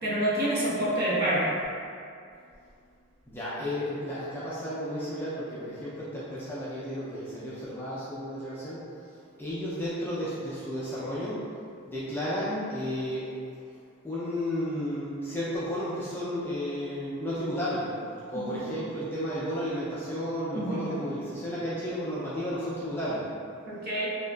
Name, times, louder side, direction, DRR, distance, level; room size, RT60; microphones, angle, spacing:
voice 1, 0.0-1.5 18.3-18.7 20.5-21.0 23.7-24.1, right 1 dB, 45° right, -8 dB, 0.7 m, -28 dB
voice 2, 3.3-8.8 9.4-11.5 11.9-13.3 14.0-17.9 18.3-23.3, equal, 10° left, -10 dB, 0.3 m, -33 dB
2.8 x 2.4 x 2.2 m, 2.3 s
head